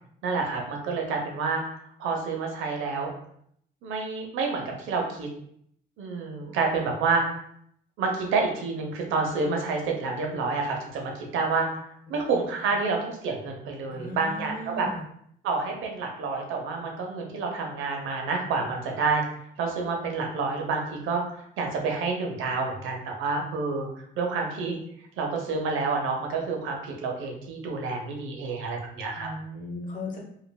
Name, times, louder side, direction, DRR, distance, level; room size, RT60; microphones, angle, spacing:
voice 1, 0.2-1.6 2.0-3.1 3.8-5.3 6.0-7.4 8.0-11.8 12.1-14.9 15.4-19.3 19.6-23.9 24.2-24.8 25.2-29.3, right 4 dB, 90° right, 1 dB, 0.6 m, -28 dB
voice 2, 13.9-15.0 29.1-30.2, left 1 dB, 40° left, -1 dB, 0.9 m, -37 dB
3.1 x 2.5 x 2.2 m, 0.68 s
cardioid pair, 90°, 20 cm